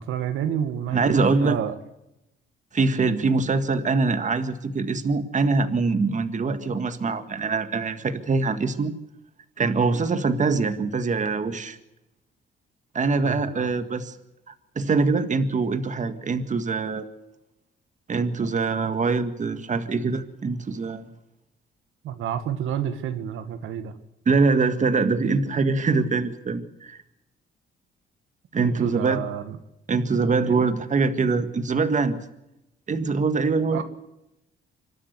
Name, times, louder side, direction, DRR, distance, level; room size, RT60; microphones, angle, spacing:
voice 1, 0.0-1.7 13.2-13.7 22.0-23.9 28.6-29.6 30.4-30.7 33.7-33.8, right 9 dB, 85° right, 9 dB, 1.7 m, -29 dB
voice 2, 0.9-1.6 2.7-8.9 9.6-11.8 12.9-14.1 14.5-17.1 18.1-21.1 24.2-27.0 28.5-29.2 29.9-32.2 32.9-33.8, right 4 dB, 40° right, 9 dB, 1.8 m, -23 dB
26.0 x 12.5 x 8.1 m, 0.90 s
cardioid pair, 90°, 20 cm